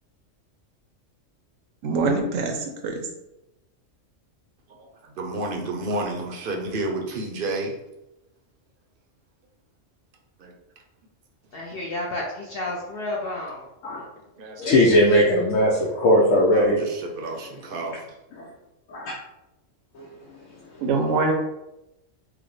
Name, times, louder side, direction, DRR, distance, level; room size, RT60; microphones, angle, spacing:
voice 1, 1.8-3.1 20.8-21.3, right 3 dB, 80° right, 4 dB, 1.0 m, -24 dB
voice 2, 4.8-7.8 10.4-10.5 14.4-14.7 14.9-15.1 16.5-17.9, right 2 dB, 55° right, 2 dB, 0.6 m, -31 dB
voice 3, 11.5-13.7, left 2 dB, 60° left, -2 dB, 0.7 m, -31 dB
voice 4, 14.6-16.8 18.3-18.5 18.9-19.1 19.9-20.0, left 1 dB, 85° left, -3 dB, 1.1 m, -19 dB
4.8 x 2.1 x 3.1 m, 0.91 s
omnidirectional pair, 1.3 m